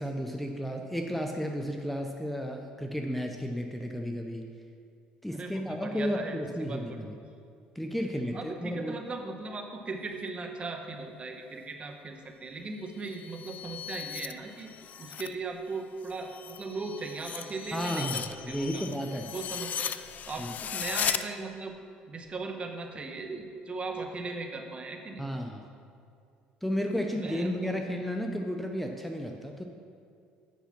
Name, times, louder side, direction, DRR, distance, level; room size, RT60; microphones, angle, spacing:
voice 1, 0.0-4.5 5.2-7.1 7.8-9.0 17.7-19.3 20.4-20.5 25.2-25.6 26.6-29.6, equal, 5° left, 3 dB, 0.7 m, -33 dB
voice 2, 5.3-7.1 8.3-14.7 15.0-18.9 19.3-19.9 20.3-21.8 22.1-25.2 26.9-27.8, right 3 dB, 35° right, 4 dB, 1.1 m, -38 dB
sound 1, 12.9-15.4 15.7-21.2, left 9 dB, 50° left, 0.4 m, -37 dB
8.4 x 5.8 x 5.9 m, 2.3 s
supercardioid pair, 90°, 3 cm